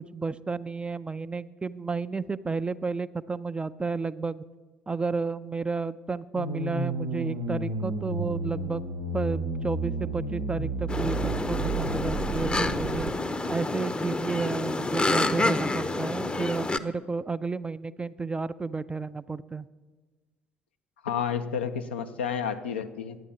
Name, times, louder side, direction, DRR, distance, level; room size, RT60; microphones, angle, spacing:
voice 1, 0.0-4.4 4.9-8.8 9.1-13.1 13.5-19.7, right 4 dB, 20° right, 14 dB, 0.4 m, -32 dB
sound 1, 6.4-13.1, right 2 dB, 80° right, 0.8 m, -32 dB
sound 2, 10.9-16.8, left 2 dB, 15° left, 0.6 m, -28 dB
voice 2, 21.0-23.2, left 7 dB, 80° left, 8 dB, 0.5 m, -30 dB
11.0 x 8.9 x 5.8 m, 1.3 s
figure-of-eight pair, 50°, 6 cm